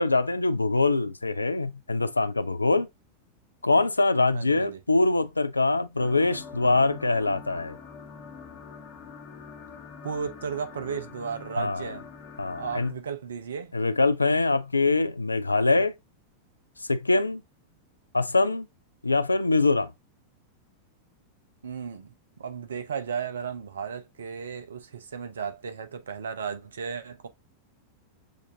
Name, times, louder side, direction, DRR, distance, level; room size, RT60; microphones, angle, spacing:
voice 1, 0.0-2.9 3.6-7.8 11.6-11.9 12.4-12.9 13.7-15.9 16.9-17.4 18.1-18.7 19.0-19.9, left 3 dB, 80° left, 0.3 m, -23 dB
voice 2, 4.3-4.8 10.0-12.1 12.6-13.7 21.6-22.1 22.4-27.3, right 6 dB, 65° right, 0.6 m, -34 dB
sound 1, 6.0-12.9, left 6 dB, 45° left, 1.0 m, -44 dB
6.4 x 2.5 x 2.6 m
figure-of-eight pair, 90°, 0 cm